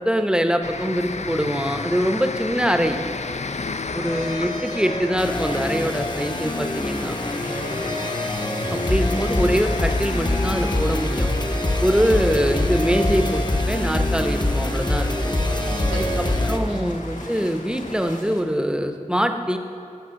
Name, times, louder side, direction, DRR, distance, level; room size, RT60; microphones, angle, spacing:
voice 1, 0.0-3.0 3.9-7.1 8.7-11.3 11.8-15.3 15.9-16.1 16.5-19.6, equal, 5° right, 6 dB, 0.7 m, -23 dB
sound 1, 0.6-18.2, left 4 dB, 55° left, 0.4 m, -34 dB
sound 2, 4.0-16.6, left 1 dB, 30° left, 0.9 m, -24 dB
sound 3, 6.2-18.4, left 1 dB, 70° left, 1.5 m, -45 dB
voice 2, 7.3-7.9 15.4-16.9, right 2 dB, 55° right, 2 dB, 1.1 m, -35 dB
14.5 x 5.4 x 6.3 m, 2.5 s
wide cardioid pair, 50°, 14 cm